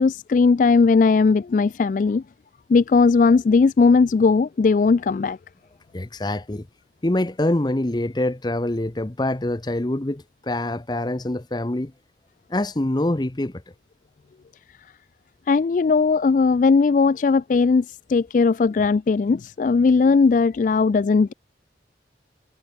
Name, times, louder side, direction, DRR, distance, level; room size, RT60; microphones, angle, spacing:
voice 1, 0.0-2.2 2.7-5.4 15.5-21.3, left 4 dB, 45° left, 0.3 m, -18 dB
voice 2, 5.9-6.7 7.0-11.9 12.5-13.6, left 1 dB, 25° left, 0.7 m, -25 dB
head